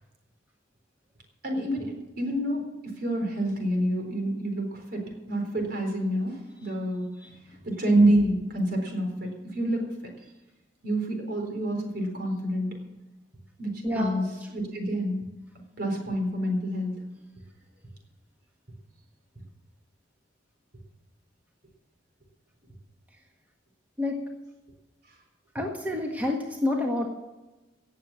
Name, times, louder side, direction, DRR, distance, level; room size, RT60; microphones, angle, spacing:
voice 1, 1.4-5.0 5.3-7.1 7.6-10.1 10.8-12.8 13.6-15.3 15.8-17.0, right 1 dB, 60° right, 2 dB, 4.3 m, -27 dB
voice 2, 13.8-14.2 24.0-24.2 25.5-27.1, left 2 dB, 10° right, 0 dB, 1.5 m, -28 dB
17.5 x 7.6 x 7.6 m, 1.1 s
head